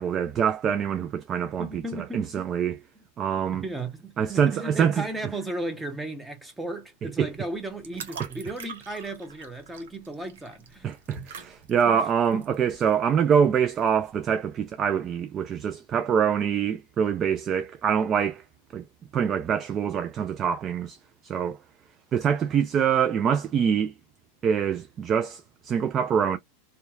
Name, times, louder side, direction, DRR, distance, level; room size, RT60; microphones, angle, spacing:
voice 1, 0.0-1.8 2.1-2.8 3.2-3.6 4.2-5.0 7.0-7.3 10.8-18.4 18.7-18.8 19.1-21.0 21.2-21.6 22.1-23.9 24.4-26.4, right 7 dB, 35° right, 0.4 m, -25 dB
voice 2, 1.6-2.2 3.5-10.9 11.9-12.5, right 2 dB, 10° right, 0.8 m, -35 dB
sound 1, 7.3-14.1, right 5 dB, 80° right, 0.8 m, -45 dB
2.7 x 2.3 x 2.4 m
hypercardioid pair, 100°, 0 cm